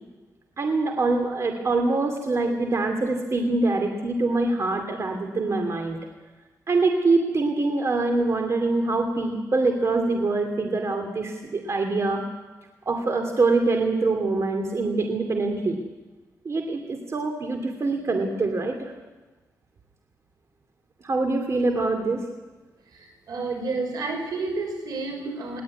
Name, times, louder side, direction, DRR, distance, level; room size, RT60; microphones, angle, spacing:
voice 1, 0.6-6.0 6.7-12.2 12.9-15.8 16.4-18.9 21.0-22.2, right 3 dB, 45° right, 4 dB, 2.6 m, -24 dB
voice 2, 22.9-25.6, right 3 dB, 85° right, 3 dB, 6.1 m, -30 dB
20.5 x 17.5 x 9.5 m, 1.2 s
cardioid pair, 95°, 7 cm